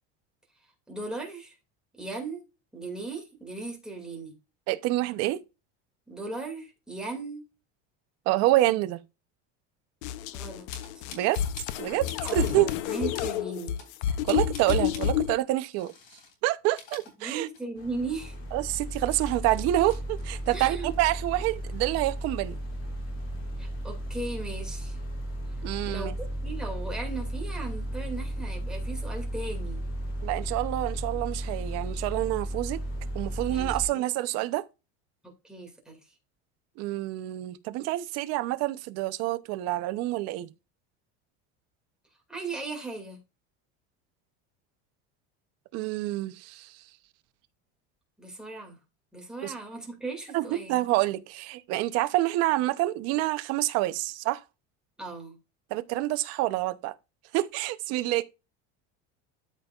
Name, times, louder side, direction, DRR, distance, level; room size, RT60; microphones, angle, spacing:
voice 1, 0.9-1.6 1.9-2.4 2.7-4.3 6.1-7.4 10.3-10.7 10.9-11.0 12.2-13.8 17.2-18.4 20.5-20.9 23.6-25.0 25.8-26.2 26.4-29.9 33.5-34.0 35.2-36.0 42.3-43.2 48.2-48.8 49.1-50.8 55.0-55.4, right 3 dB, ahead, 2.3 m, -37 dB
voice 2, 4.7-5.4 8.3-9.0 11.1-11.4 11.8-12.7 14.2-15.9 16.4-17.5 18.5-22.6 25.6-26.2 30.2-32.8 33.1-34.6 36.8-40.5 45.7-46.7 49.4-49.5 50.3-54.4 55.7-56.9 57.3-58.2, right 16 dB, 50° right, 0.8 m, -27 dB
sound 1, 10.0-15.4, left 10 dB, 85° left, 0.8 m, -29 dB
sound 2, 10.7-11.8 12.0-12.8 13.1-13.3 13.8-15.1 15.7-16.3 16.6-17.8 18.2-18.3 18.7-20.6 20.9-21.5, left 5 dB, 60° left, 3.2 m, -46 dB
sound 3, 17.8-33.9, right 1 dB, 40° left, 2.5 m, -34 dB
13.0 x 5.3 x 2.4 m
cardioid pair, 170°, 32 cm